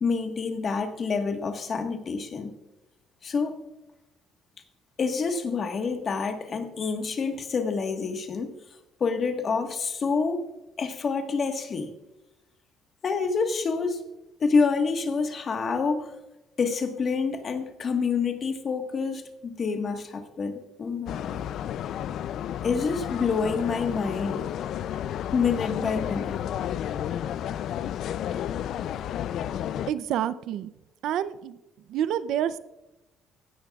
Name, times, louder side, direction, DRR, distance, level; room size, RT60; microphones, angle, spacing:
voice 1, 0.0-2.5 3.2-3.6 5.0-8.5 9.0-10.5 10.8-11.9 13.0-14.0 14.4-16.1 16.6-21.4 22.6-24.5 25.3-26.4, left 5 dB, 35° left, 6 dB, 1.4 m, -27 dB
sound 1, 21.1-29.9, left 10 dB, 60° left, 0.4 m, -32 dB
voice 2, 29.9-30.7 31.0-31.6 31.9-32.6, right 10 dB, 70° right, 16 dB, 0.5 m, -28 dB
16.5 x 13.0 x 2.4 m, 1.0 s
cardioid pair, 135°, 0 cm